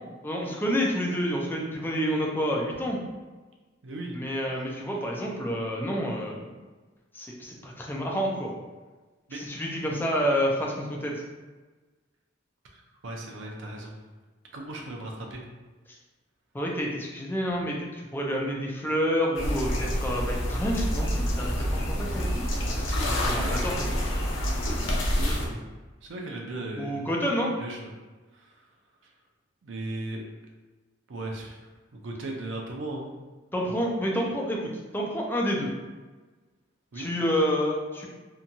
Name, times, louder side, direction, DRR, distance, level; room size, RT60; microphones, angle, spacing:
voice 1, 0.2-3.0 4.1-6.5 7.1-8.5 9.3-11.1 16.5-22.5 22.7-24.1 26.8-27.5 33.5-34.6 34.9-35.7 36.9-38.1, equal, 10° left, -1 dB, 0.4 m, -29 dB
voice 2, 3.8-4.2 9.3-9.4 12.7-14.0 14.5-15.4 23.2-23.5 25.1-25.6 26.0-27.1 27.6-27.8 28.3-28.6 29.6-30.2 31.1-33.1 36.9-37.1, right 2 dB, 75° right, 1 dB, 0.5 m, -37 dB
sound 1, 19.3-25.5, equal, 85° left, 0.6 m, -27 dB
2.8 x 2.3 x 2.6 m, 1.3 s
head